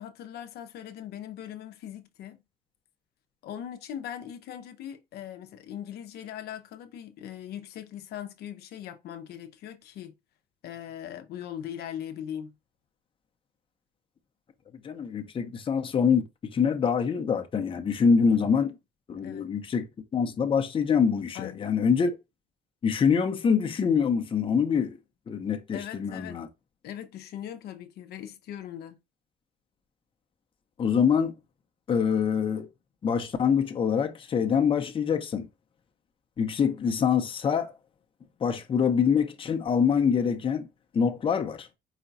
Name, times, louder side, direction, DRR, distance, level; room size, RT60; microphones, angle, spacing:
voice 1, 0.0-2.4 3.4-10.1 10.6-12.5 19.2-19.5 21.3-21.7 25.7-26.4 26.8-29.0, left 10 dB, 70° left, 0.7 m, -40 dB
voice 2, 14.8-18.7 19.1-19.9 20.1-22.1 22.8-25.0 25.3-26.5 30.8-31.4 31.9-32.7 33.0-35.5 36.4-37.7 38.4-40.7 40.9-41.7, left 6 dB, 30° left, 0.7 m, -25 dB
4.9 x 2.2 x 3.9 m
cardioid pair, 110°, 17 cm